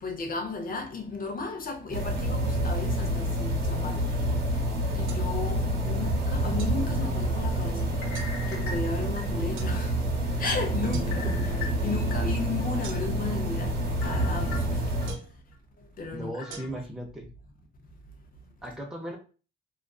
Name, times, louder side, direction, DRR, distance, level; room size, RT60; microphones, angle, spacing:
voice 1, 0.0-4.1 4.9-8.0 8.5-10.0 10.4-11.4 11.8-14.8 15.1-15.2 16.0-16.8, left 3 dB, 45° left, 0.7 m, -34 dB
sound 1, 1.9-15.1, right 1 dB, 55° right, 0.9 m, -28 dB
sound 2, 5.1-5.2 6.6-6.8 8.1-8.3 9.6-9.7 10.9-11.1 12.8-13.3 15.1-15.4 16.5-16.6, right 7 dB, 80° right, 0.5 m, -43 dB
sound 3, 7.9-9.7 10.2-10.3 11.1-12.2 12.6-12.7 14.0-15.1 15.5-15.6 16.4-16.7, left 4 dB, 90° left, 1.0 m, -41 dB
voice 2, 16.1-17.3 18.6-19.2, equal, 5° right, 0.6 m, -37 dB
2.4 x 2.4 x 2.3 m
cardioid pair, 90°, 20 cm